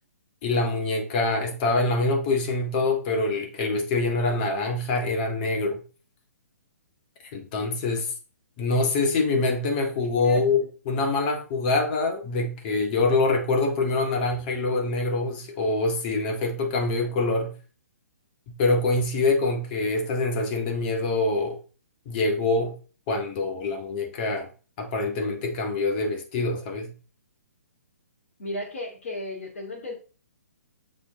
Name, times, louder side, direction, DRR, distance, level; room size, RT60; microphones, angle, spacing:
voice 1, 0.4-5.8 7.3-8.1 8.6-17.5 18.5-21.6 22.1-22.7 23.1-24.5 24.8-26.9, left 3 dB, 35° left, 1.9 m, -25 dB
voice 2, 28.4-29.9, left 1 dB, 55° left, 2.8 m, -33 dB
7.1 x 5.2 x 3.7 m
figure-of-eight pair, 130°, 9 cm